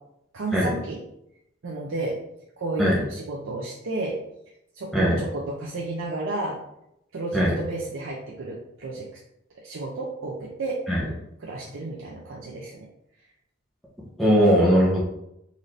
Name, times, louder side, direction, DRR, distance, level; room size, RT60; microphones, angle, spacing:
voice 1, 0.3-1.0 1.6-2.2 2.6-4.2 4.7-6.6 7.1-9.1 9.6-10.8 11.4-12.9, right 2 dB, 70° right, -2 dB, 0.5 m, -32 dB
voice 2, 14.2-15.0, equal, ahead, -6 dB, 0.7 m, -19 dB
4.0 x 2.5 x 3.2 m, 0.82 s
head